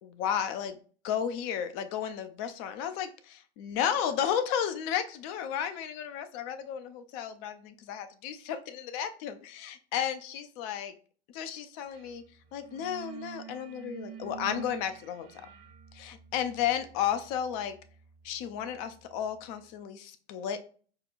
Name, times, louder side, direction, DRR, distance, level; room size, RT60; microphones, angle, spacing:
voice 1, 0.0-0.8 1.0-10.9 11.3-12.2 12.5-15.4 15.9-17.8 18.2-20.6, left 9 dB, 35° left, 10 dB, 0.4 m, -33 dB
sound 1, 11.9-12.2 12.4-19.1, right 10 dB, 55° right, 0.6 m, -48 dB
4.6 x 2.1 x 2.4 m, 0.43 s
figure-of-eight pair, 100°, 35 cm